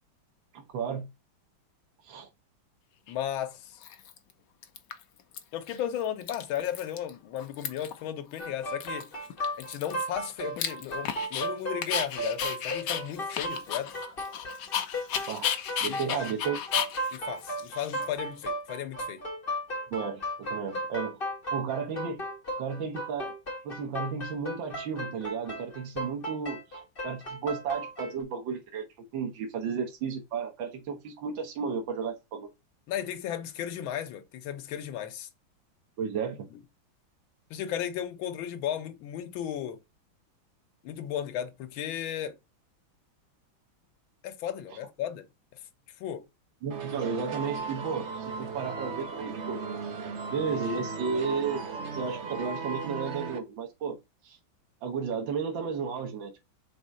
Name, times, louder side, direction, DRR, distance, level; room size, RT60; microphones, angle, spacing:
voice 1, 0.5-1.1 2.0-2.3 15.3-16.6 19.9-21.2 21.5-22.2 22.6-23.3 23.6-32.5 36.0-36.5 46.6-49.6 50.3-51.7 51.9-54.0 54.2-54.4 54.8-56.4, right 6 dB, 75° right, 1.8 m, -33 dB
voice 2, 3.1-3.8 5.5-9.1 9.6-13.9 15.8-16.2 17.1-19.3 32.9-35.3 36.5-36.6 37.5-39.8 40.8-42.4 44.2-45.3 45.5-45.6 46.0-46.3, left 10 dB, 85° left, 1.6 m, -35 dB
Dog, 3.1-3.2 3.8-4.3 4.6-5.4 5.7-5.8 6.0-7.1 7.4-8.0 8.4-8.5 8.8-11.5 11.8-18.4, left 9 dB, 65° left, 1.3 m, -34 dB
sound 1, 8.4-28.2, right 1 dB, 30° left, 1.7 m, -35 dB
sound 2, 46.7-53.4, right 4 dB, 45° right, 1.0 m, -36 dB
4.9 x 3.7 x 5.3 m
omnidirectional pair, 2.1 m